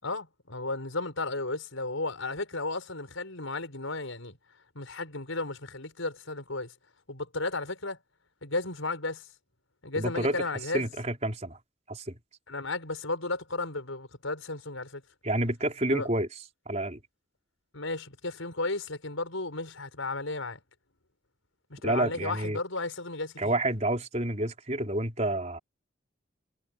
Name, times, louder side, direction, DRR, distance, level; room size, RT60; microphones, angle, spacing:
voice 1, 0.0-4.4 4.7-6.7 7.1-8.0 8.4-9.3 9.8-10.9 12.5-15.0 15.9-16.1 17.7-20.6 21.7-23.6, left 2 dB, 85° left, 5.8 m, -34 dB
voice 2, 10.0-10.4 10.7-11.6 11.9-12.2 15.2-16.3 16.7-17.0 21.8-22.6 23.4-25.6, right 1 dB, 35° right, 4.7 m, -29 dB
head